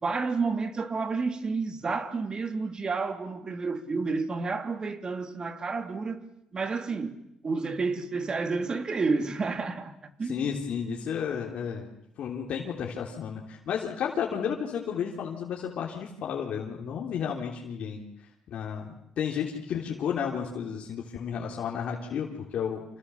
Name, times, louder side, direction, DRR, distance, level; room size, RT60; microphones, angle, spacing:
voice 1, 0.0-6.2 6.5-7.2 7.4-10.5, right 4 dB, 40° right, 3.1 m, -30 dB
voice 2, 10.3-11.9 12.2-18.0 18.5-22.8, left 7 dB, 70° left, 3.5 m, -32 dB
29.0 x 27.5 x 7.2 m
cardioid pair, 75°, 2 cm